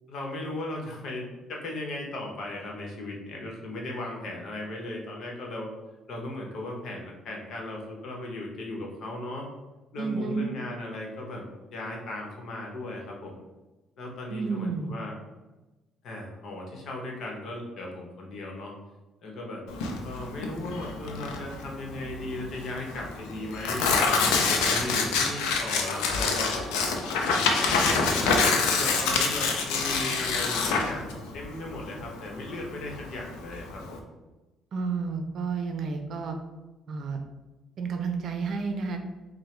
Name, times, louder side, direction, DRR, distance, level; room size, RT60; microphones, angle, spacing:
voice 1, 0.1-5.7 6.1-9.5 9.9-11.4 11.7-13.4 14.0-15.1 16.0-18.7 19.2-24.2 24.6-26.6 27.2-34.1, left 1 dB, 65° left, 0 dB, 1.0 m, -37 dB
voice 2, 10.0-10.5 14.3-14.9 34.7-36.4 36.9-37.2 37.8-39.0, right 4 dB, 60° right, 5 dB, 0.6 m, -31 dB
Tearing, 19.7-34.0, left 4 dB, 90° left, 0.5 m, -26 dB
4.7 x 2.2 x 3.2 m, 1.1 s
supercardioid pair, 75°, 0 cm